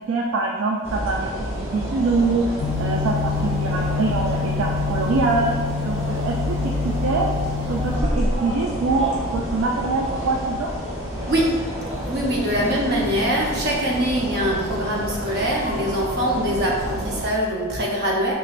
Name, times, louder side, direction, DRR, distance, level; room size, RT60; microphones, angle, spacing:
voice 1, 0.1-2.5 2.8-5.6 5.8-7.3 7.7-10.7, right 3 dB, 70° right, 0 dB, 0.3 m, -24 dB
sound 1, 0.8-17.3, equal, 10° right, 0.9 m, -29 dB
sound 2, 2.6-8.0, left 5 dB, 75° left, 0.3 m, -27 dB
voice 2, 12.1-18.3, equal, 50° right, -3 dB, 0.8 m, -23 dB
4.5 x 2.9 x 2.5 m, 1.5 s
head